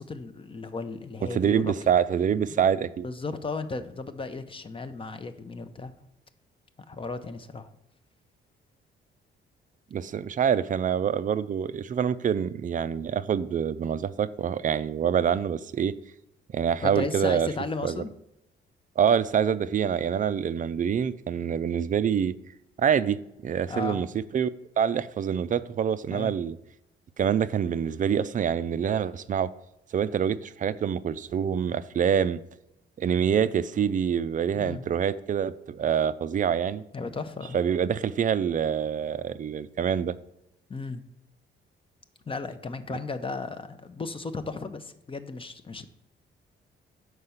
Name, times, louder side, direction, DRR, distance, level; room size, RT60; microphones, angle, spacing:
voice 1, 0.0-1.7 3.0-5.9 6.9-7.7 16.8-18.1 23.7-24.0 26.1-26.3 34.5-34.8 36.9-37.6 40.7-41.0 42.3-45.9, left 3 dB, 25° left, 10 dB, 0.7 m, -35 dB
voice 2, 1.3-3.1 9.9-15.9 16.5-17.5 17.8-18.0 19.0-22.3 22.8-24.1 24.3-24.5 24.8-26.6 27.2-29.5 29.9-32.4 33.0-36.8 37.5-40.1, right 8 dB, 40° right, 14 dB, 0.4 m, -26 dB
6.5 x 4.7 x 5.6 m, 0.84 s
cardioid pair, 90°, 20 cm